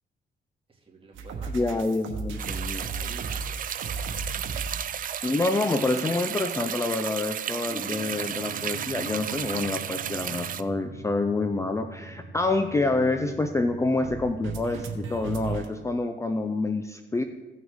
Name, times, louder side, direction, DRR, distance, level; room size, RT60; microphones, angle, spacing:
voice 1, 0.7-1.7 2.8-3.6 3.9-4.5, right 3 dB, 25° right, -2 dB, 2.3 m, -48 dB
sound 1, 1.1-4.8 7.6-15.7, right 4 dB, 80° right, 1.1 m, -37 dB
voice 2, 1.5-2.9 5.2-17.2, left 3 dB, 15° left, 7 dB, 0.5 m, -27 dB
sound 2, 2.4-10.6, right 9 dB, 45° right, 0.4 m, -33 dB
16.0 x 6.1 x 3.6 m, 1.2 s
cardioid pair, 90°, 20 cm